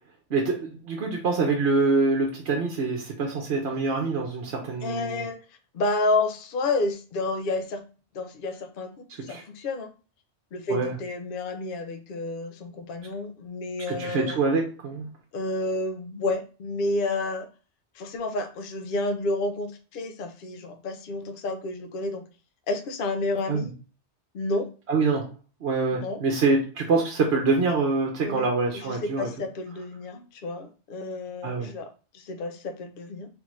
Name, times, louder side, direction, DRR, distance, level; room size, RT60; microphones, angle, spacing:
voice 1, 0.3-5.3 9.3-9.4 10.7-11.0 13.9-15.1 23.5-23.7 24.9-25.3 25.6-29.3 31.4-31.7, right 3 dB, 65° right, 1 dB, 1.1 m, -25 dB
voice 2, 4.8-5.4 5.7-7.8 8.1-9.9 10.5-14.4 15.3-17.5 18.0-22.2 22.7-23.7 24.3-24.7 26.0-26.2 28.2-28.5 28.7-33.3, left 2 dB, 55° left, 7 dB, 0.8 m, -30 dB
3.7 x 3.5 x 3.1 m, 0.35 s
omnidirectional pair, 1.2 m